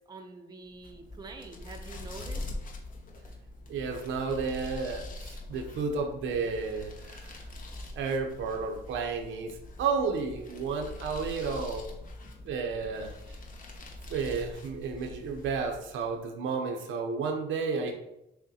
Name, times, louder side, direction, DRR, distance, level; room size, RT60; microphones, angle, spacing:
voice 1, 0.1-2.5, right 3 dB, 20° right, 4 dB, 0.5 m, -46 dB
sound 1, 0.7-16.2, left 2 dB, 45° left, 0.8 m, -43 dB
voice 2, 3.7-7.4 7.9-11.9 12.4-13.4 14.1-17.9, right 5 dB, 75° right, 3 dB, 0.6 m, -32 dB
6.2 x 2.1 x 2.7 m, 0.86 s
cardioid pair, 90°, 20 cm